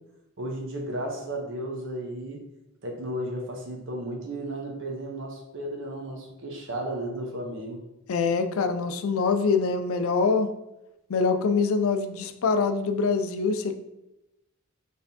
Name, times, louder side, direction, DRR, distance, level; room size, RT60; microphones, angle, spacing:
voice 1, 0.4-2.4 2.8-7.8, right 1 dB, 60° right, 1 dB, 0.8 m, -34 dB
voice 2, 8.1-10.5 11.1-13.7, left 4 dB, 70° left, 8 dB, 0.4 m, -24 dB
4.2 x 3.4 x 2.7 m, 0.91 s
head